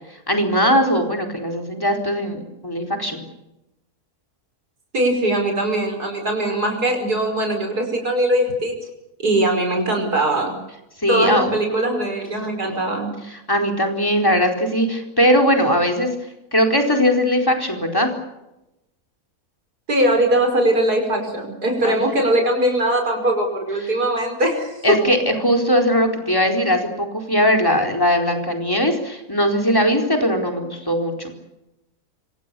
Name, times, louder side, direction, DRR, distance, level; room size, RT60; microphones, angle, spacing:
voice 1, 0.3-3.2 11.0-11.5 13.3-16.1 16.5-18.1 21.8-22.0 24.8-31.3, equal, 15° left, 3 dB, 4.4 m, -19 dB
voice 2, 4.9-8.7 9.2-10.6 11.1-13.1 19.9-25.0, right 1 dB, 90° right, 3 dB, 5.9 m, -21 dB
26.0 x 26.0 x 7.0 m, 0.93 s
omnidirectional pair, 1.6 m